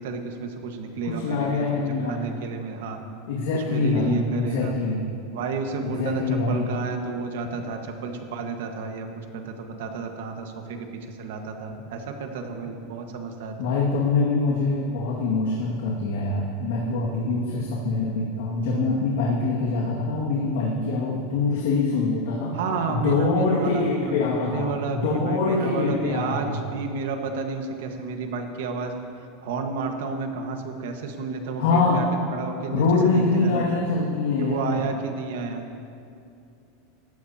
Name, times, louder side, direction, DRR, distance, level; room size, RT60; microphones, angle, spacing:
voice 1, 0.0-3.0 3.5-4.7 5.3-6.2 6.5-13.6 22.5-28.9 29.4-32.1 32.3-32.8 33.1-33.8 34.4-35.7, right 4 dB, 75° right, 4 dB, 1.4 m, -31 dB
voice 2, 1.0-2.4 3.3-5.0 5.8-6.8 13.6-22.5 22.9-26.6 31.6-32.0 32.7-34.8, left 3 dB, 85° left, -4 dB, 2.0 m, -24 dB
18.5 x 14.0 x 2.9 m, 2.6 s
supercardioid pair, 160°, 0 cm